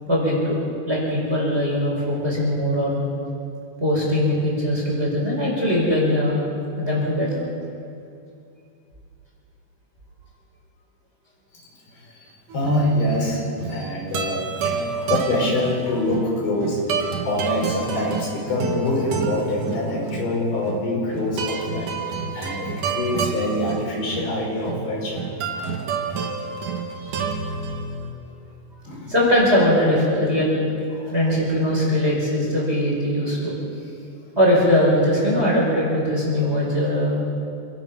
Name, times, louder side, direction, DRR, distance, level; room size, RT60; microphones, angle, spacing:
voice 1, 0.1-0.5 0.9-3.0 3.8-6.4 6.8-7.4 27.0-27.1 29.1-30.6 31.1-33.5 34.4-37.2, left 1 dB, 15° right, -4 dB, 5.4 m, -21 dB
voice 2, 12.1-25.2 25.5-25.9 28.8-29.1 30.9-31.2 36.9-37.2, left 1 dB, 80° left, -3 dB, 7.4 m, -25 dB
sound 1, 12.5-28.1, right 5 dB, 60° right, 3.0 m, -29 dB
28.0 x 16.5 x 6.0 m, 2.5 s
omnidirectional pair, 4.3 m